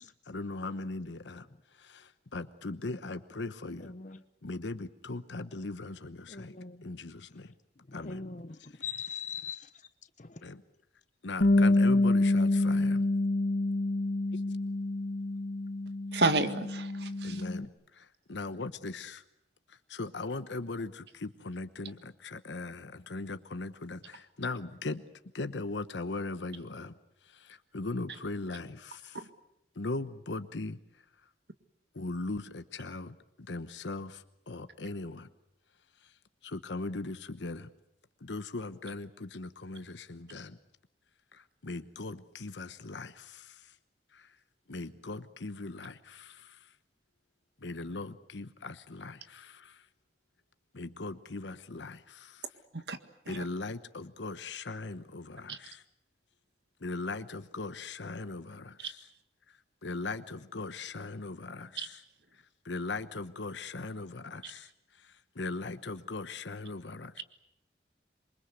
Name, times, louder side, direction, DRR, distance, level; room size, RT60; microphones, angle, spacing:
voice 1, 0.2-3.9 4.4-7.5 7.9-8.2 8.6-8.9 10.4-10.6 11.2-13.1 14.3-14.5 17.2-19.2 19.7-25.0 25.3-29.3 29.7-31.3 31.9-33.2 33.5-35.3 36.0-37.7 38.2-40.6 41.3-43.8 44.1-44.4 44.7-46.8 47.6-49.9 50.7-52.5 53.2-55.8 56.8-59.1 59.5-62.0 62.3-67.2, left 3 dB, 90° left, 1.0 m, -39 dB
voice 2, 3.8-4.2 6.3-6.8 7.9-9.7 10.2-10.5, left 6 dB, 45° left, 0.9 m, -41 dB
Bass guitar, 11.4-17.7, left 2 dB, 65° left, 1.6 m, -27 dB
voice 3, 16.1-17.4 52.7-53.0 55.5-55.6 58.8-58.9 61.8-61.9, right 3 dB, 65° right, 1.8 m, -30 dB
27.0 x 23.5 x 8.1 m
head